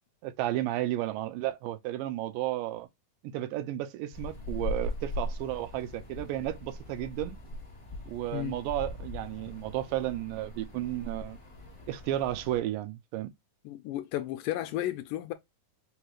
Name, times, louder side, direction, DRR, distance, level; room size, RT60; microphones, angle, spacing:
voice 1, 0.2-2.9 3.3-7.4 8.1-11.4 11.9-13.3, right 14 dB, 85° right, 2.3 m, -33 dB
sound 1, 4.1-12.6, left 2 dB, 30° left, 1.2 m, -40 dB
voice 2, 13.7-15.3, left 14 dB, 80° left, 2.0 m, -33 dB
5.5 x 3.0 x 2.4 m
omnidirectional pair, 4.0 m